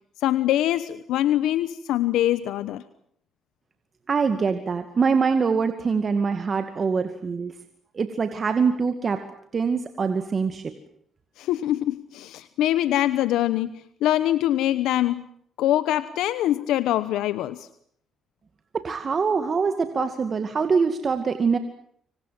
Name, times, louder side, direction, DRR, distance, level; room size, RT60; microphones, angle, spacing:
voice 1, 0.2-2.8 11.4-13.8 14.0-15.3 15.6-17.7 20.0-20.1, left 13 dB, 90° left, 14 dB, 1.0 m, -23 dB
voice 2, 4.1-7.5 7.9-9.2 9.5-10.7 18.7-21.6, right 5 dB, 40° right, 8 dB, 2.2 m, -24 dB
26.0 x 25.5 x 7.7 m, 0.66 s
cardioid pair, 90°, 0 cm